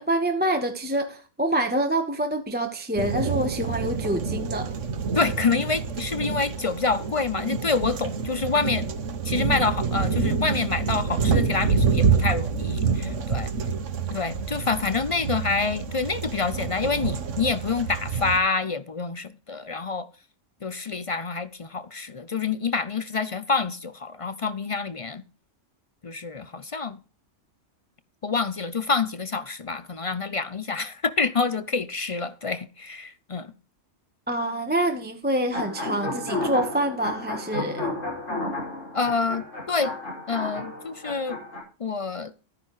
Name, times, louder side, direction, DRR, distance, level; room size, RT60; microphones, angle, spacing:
voice 1, 0.0-4.7 34.3-37.9, right 1 dB, 10° right, 1.1 m, -26 dB
sound 1, 3.0-18.4, right 5 dB, 75° right, 1.3 m, -27 dB
voice 2, 5.1-8.9 9.2-13.5 14.1-20.1 20.6-25.2 26.0-27.0 28.2-33.5 38.9-39.9 40.3-41.4 41.8-42.3, left 4 dB, 40° left, 0.4 m, -27 dB
sound 2, 35.5-41.6, left 2 dB, 80° left, 5.8 m, -32 dB
13.0 x 9.8 x 3.1 m
omnidirectional pair, 1.3 m